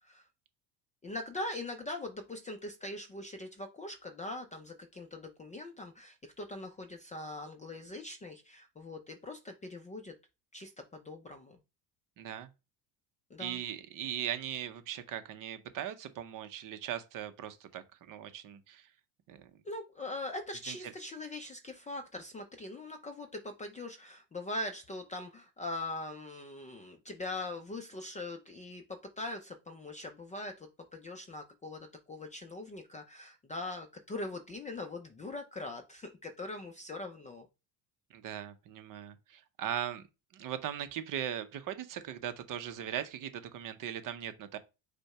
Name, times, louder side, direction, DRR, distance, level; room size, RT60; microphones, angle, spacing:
voice 1, 1.0-10.2 10.5-11.6 13.3-13.6 19.6-37.5, left 2 dB, 15° left, 0.4 m, -42 dB
voice 2, 12.2-12.5 13.4-18.9 19.3-19.5 20.6-20.8 38.1-40.1 40.3-44.6, right 10 dB, 45° right, 0.8 m, -39 dB
5.0 x 2.2 x 4.8 m
supercardioid pair, 110°, 46 cm